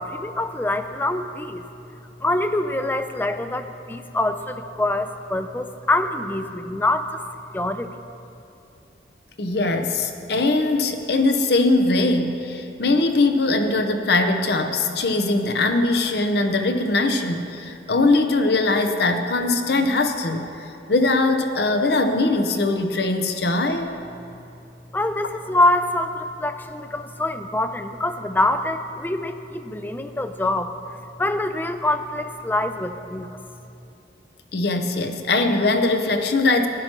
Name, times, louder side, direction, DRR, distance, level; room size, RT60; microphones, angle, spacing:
voice 1, 0.0-1.6 2.2-7.2 7.5-7.9 24.9-33.4, left 1 dB, 10° left, 8 dB, 0.3 m, -25 dB
voice 2, 9.4-20.5 20.9-23.9 34.5-36.7, left 2 dB, 60° left, 7 dB, 0.7 m, -21 dB
15.5 x 12.0 x 2.9 m, 2.7 s
head